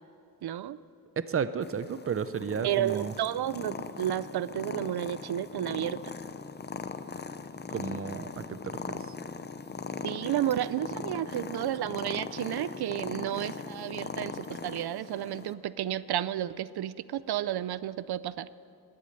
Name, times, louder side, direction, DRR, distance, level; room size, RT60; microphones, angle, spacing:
voice 1, 0.4-0.8 2.6-6.0 10.0-18.5, right 12 dB, 85° right, 17 dB, 0.5 m, -32 dB
voice 2, 1.2-3.1 7.7-9.2, right 7 dB, 35° right, 13 dB, 0.5 m, -33 dB
Purr, 1.6-15.5, left 5 dB, 30° left, 0.6 m, -40 dB
19.5 x 8.6 x 7.8 m, 2.6 s
wide cardioid pair, 140°, 38 cm